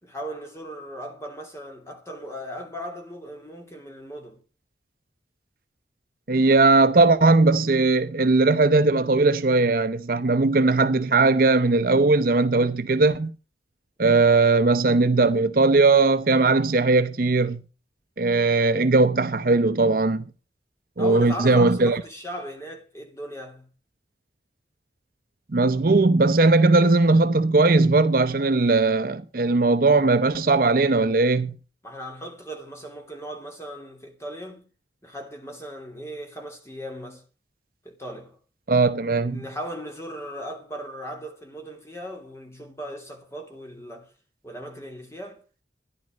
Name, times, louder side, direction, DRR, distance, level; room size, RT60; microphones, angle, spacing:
voice 1, 0.0-4.4 21.0-23.7 31.8-34.7 35.0-37.2 37.8-38.4 39.2-44.1 44.4-45.4, equal, 15° left, 2.9 m, -37 dB
voice 2, 6.3-13.3 14.0-17.6 18.2-20.2 21.0-22.0 25.5-31.5 38.7-39.4, right 3 dB, 50° right, 0.6 m, -19 dB
14.0 x 10.5 x 5.2 m
head